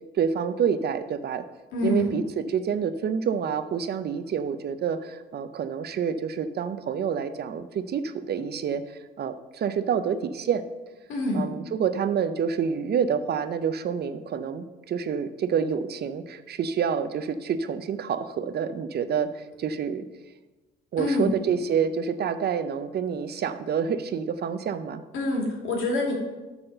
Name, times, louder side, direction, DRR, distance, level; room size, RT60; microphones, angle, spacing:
voice 1, 0.1-1.4 1.8-10.6 11.3-20.0 20.9-25.0, right 7 dB, 55° right, 11 dB, 0.6 m, -28 dB
voice 2, 1.7-2.2 11.1-11.5 21.0-21.4 25.1-26.1, left 2 dB, 85° left, -1 dB, 2.3 m, -26 dB
8.7 x 4.2 x 6.7 m, 1.2 s
cardioid pair, 90°, 20 cm